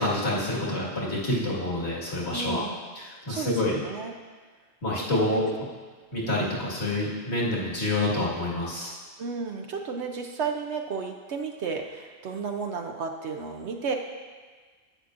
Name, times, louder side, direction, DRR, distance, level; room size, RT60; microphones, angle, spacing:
voice 1, 0.0-2.6 3.0-3.7 4.8-5.4 6.1-8.9, left 1 dB, 55° left, -6 dB, 2.1 m, -27 dB
voice 2, 2.3-2.8 3.3-4.1 5.1-5.4 9.2-13.9, right 5 dB, 65° right, 3 dB, 0.9 m, -33 dB
10.0 x 8.5 x 2.5 m, 1.4 s
omnidirectional pair, 1.3 m